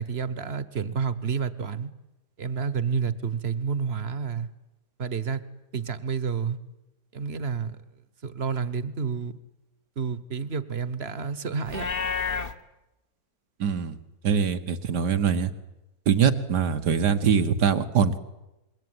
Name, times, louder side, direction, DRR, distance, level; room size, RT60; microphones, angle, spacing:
voice 1, 0.0-1.9 2.4-4.5 5.0-5.4 5.7-6.6 7.1-7.8 8.2-9.4 10.0-11.9, right 6 dB, 40° right, 15 dB, 1.3 m, -29 dB
Livestock farm animals working animals, 11.6-12.5, left 5 dB, 40° left, 1.2 m, -29 dB
voice 2, 13.6-14.0 14.2-15.5 16.1-18.2, right 7 dB, 85° right, 9 dB, 2.0 m, -23 dB
26.0 x 22.5 x 9.6 m, 0.98 s
omnidirectional pair, 1.7 m